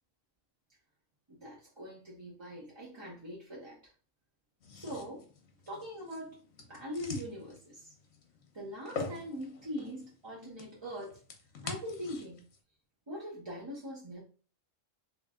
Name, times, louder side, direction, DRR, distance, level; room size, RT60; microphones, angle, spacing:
voice 1, 1.3-3.9 4.7-5.3 5.7-6.4 6.7-7.9 8.5-11.2 11.6-12.5 13.1-14.2, equal, 25° right, -4 dB, 0.7 m, -42 dB
sound 1, 4.6-12.6, left 3 dB, 70° left, 1.2 m, -45 dB
3.2 x 3.0 x 3.6 m, 0.39 s
omnidirectional pair, 1.4 m